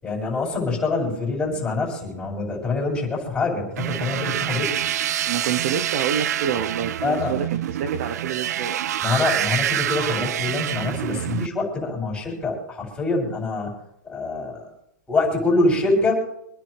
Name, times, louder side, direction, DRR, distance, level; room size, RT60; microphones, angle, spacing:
voice 1, 0.0-4.7 7.0-7.3 9.0-13.7 14.0-14.7 15.1-16.1, left 3 dB, 10° left, -2 dB, 7.4 m, -25 dB
sound 1, 3.8-11.5, right 11 dB, 65° right, 0.5 m, -26 dB
voice 2, 5.3-8.8, right 8 dB, 45° right, 10 dB, 1.1 m, -28 dB
26.5 x 10.5 x 3.5 m, 0.78 s
hypercardioid pair, 155°, 10 cm